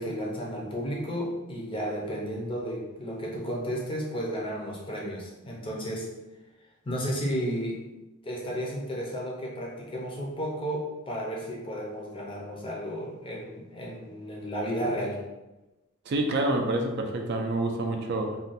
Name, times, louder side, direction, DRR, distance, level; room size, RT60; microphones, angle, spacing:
voice 1, 0.0-6.1 6.8-7.8 8.2-15.2, equal, 25° left, -2 dB, 0.5 m, -33 dB
voice 2, 16.1-18.4, right 2 dB, 50° right, 3 dB, 0.3 m, -27 dB
2.5 x 2.2 x 3.9 m, 1.1 s
head